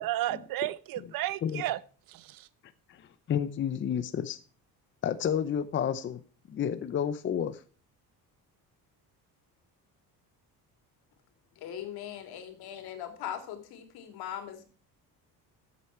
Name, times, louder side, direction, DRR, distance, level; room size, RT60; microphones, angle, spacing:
voice 1, 0.0-1.8 2.1-2.5, right 15 dB, 65° right, 0.8 m, -33 dB
voice 2, 3.3-4.4 5.0-6.2 6.5-7.6, left 8 dB, 30° left, 0.7 m, -30 dB
voice 3, 11.6-14.6, left 10 dB, 80° left, 3.1 m, -40 dB
14.0 x 8.3 x 4.5 m
cardioid pair, 165°, 37 cm